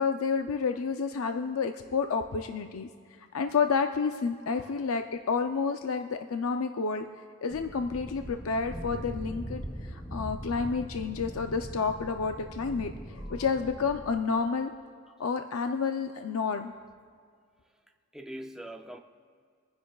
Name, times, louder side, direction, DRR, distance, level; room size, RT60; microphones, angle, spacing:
voice 1, 0.0-2.9 3.3-7.1 7.4-14.7 15.2-16.7, left 5 dB, 85° left, 6 dB, 0.5 m, -30 dB
sound 1, 7.5-14.2, equal, 25° left, 2.5 m, -41 dB
voice 2, 18.1-19.0, right 1 dB, 5° right, 4 dB, 0.5 m, -43 dB
27.0 x 10.0 x 2.3 m, 2.1 s
head